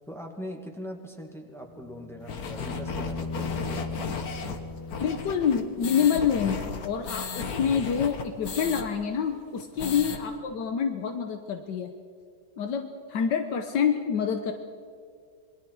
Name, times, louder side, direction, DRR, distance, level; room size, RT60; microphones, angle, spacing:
voice 1, 0.1-4.1 9.8-10.1, equal, ahead, 2 dB, 1.9 m, -41 dB
sound 1, 1.6-5.7 8.1-8.2, left 3 dB, 20° left, 0.9 m, -38 dB
sound 2, 2.3-8.8 9.2-9.3 9.6-10.2, left 5 dB, 60° left, 1.7 m, -35 dB
voice 2, 5.0-11.9 12.6-14.5, left 7 dB, 80° left, 6 dB, 1.6 m, -27 dB
27.0 x 21.0 x 4.7 m, 2.1 s
omnidirectional pair, 1.8 m